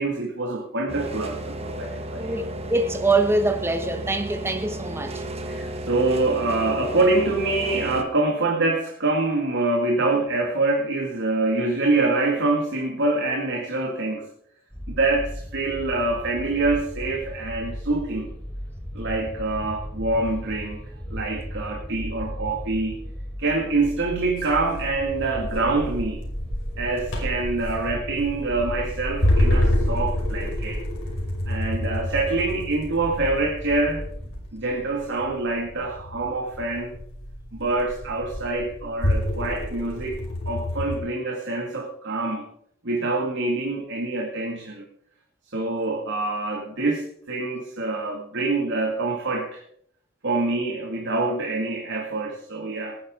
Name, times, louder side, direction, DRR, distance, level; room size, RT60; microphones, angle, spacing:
voice 1, 0.0-2.4 5.4-14.3 14.9-18.3 18.9-20.8 21.1-23.0 23.4-26.2 26.8-30.8 31.5-34.0 34.5-36.9 37.5-40.2 40.5-42.5 42.8-44.9 45.5-49.6 50.2-53.0, right 2 dB, 55° right, 2.3 m, -25 dB
sound 1, 0.9-8.0, right 1 dB, 30° right, 1.3 m, -33 dB
voice 2, 2.2-5.2, right 2 dB, 10° right, 1.3 m, -24 dB
sound 2, 14.7-34.3, equal, 5° left, 3.2 m, -36 dB
sound 3, 24.4-41.0, left 1 dB, 65° left, 5.4 m, -28 dB
19.5 x 10.5 x 3.9 m
head